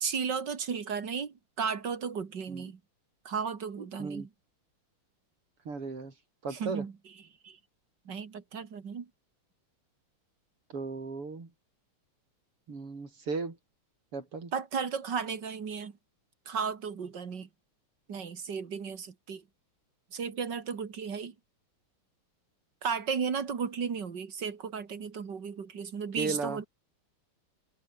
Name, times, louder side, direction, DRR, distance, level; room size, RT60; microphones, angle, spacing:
voice 1, 0.0-2.8 3.2-4.3 6.5-6.9 7.4-7.6 8.1-9.1 14.5-16.0 16.5-17.5 18.1-19.4 20.1-21.3 22.8-26.7, right 6 dB, 55° right, 2.5 m, -34 dB
voice 2, 5.7-6.1 6.4-6.8 10.7-11.5 12.7-13.6 14.1-14.5 26.2-26.6, right 4 dB, 90° right, 5.7 m, -35 dB
omnidirectional pair, 2.4 m